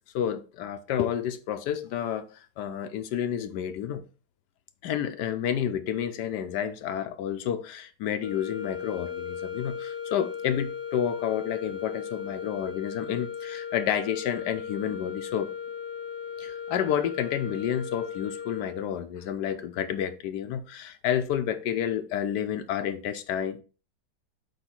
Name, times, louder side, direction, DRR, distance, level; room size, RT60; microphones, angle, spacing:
voice 1, 0.1-4.0 4.8-15.5 16.4-23.6, left 9 dB, 80° left, 1.2 m, -30 dB
sound 1, 8.2-19.1, left 7 dB, 45° left, 0.9 m, -37 dB
8.0 x 3.1 x 4.4 m
omnidirectional pair, 1.8 m